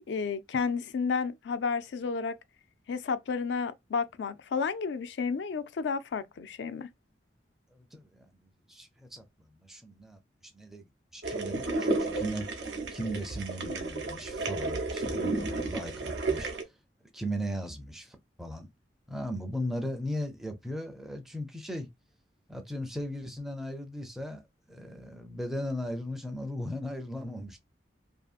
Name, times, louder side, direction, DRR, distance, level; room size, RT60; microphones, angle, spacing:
voice 1, 0.1-2.4 2.9-6.9, left 5 dB, 80° left, 0.4 m, -31 dB
voice 2, 7.7-9.2 9.5-16.7 17.1-18.7 19.1-21.9 22.5-24.4 24.7-27.6, equal, ahead, 0.4 m, -37 dB
sound 1, 11.2-16.6, right 3 dB, 85° right, 0.7 m, -32 dB
2.7 x 2.5 x 2.4 m
head